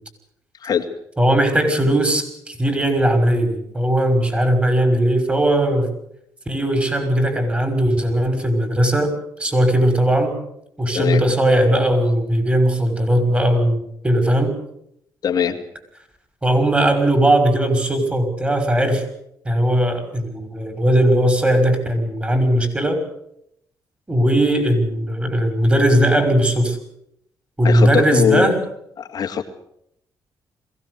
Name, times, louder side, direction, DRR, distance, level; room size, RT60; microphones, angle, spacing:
voice 1, 1.2-5.9 6.5-9.1 9.4-10.4 10.8-14.6 16.4-19.0 19.5-23.0 24.1-26.8 27.6-28.6, right 1 dB, 20° right, 8 dB, 5.8 m, -18 dB
voice 2, 15.2-15.6 27.6-28.5 29.0-29.4, left 8 dB, 65° left, 3 dB, 2.3 m, -21 dB
22.5 x 16.5 x 8.1 m, 0.73 s
cardioid pair, 90°, 7 cm